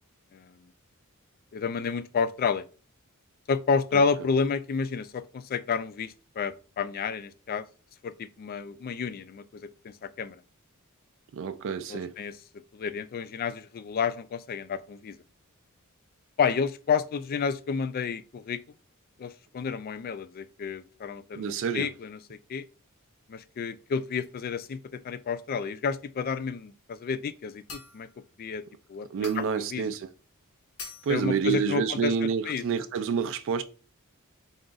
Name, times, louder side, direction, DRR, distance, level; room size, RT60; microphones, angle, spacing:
voice 1, 1.5-2.6 3.5-7.6 8.0-10.4 11.9-12.3 12.7-15.2 16.4-18.6 19.2-22.6 23.3-28.1 28.4-28.6 28.9-29.9 31.1-32.1 32.5-32.6, left 5 dB, 45° left, 0.3 m, -30 dB
voice 2, 11.3-12.1 21.4-21.9 29.1-30.1 31.0-33.6, right 6 dB, 60° right, 0.3 m, -28 dB
sound 1, 27.7-28.1 29.2-29.6 30.8-31.3, left 4 dB, 90° left, 1.2 m, -43 dB
3.7 x 2.4 x 3.8 m
head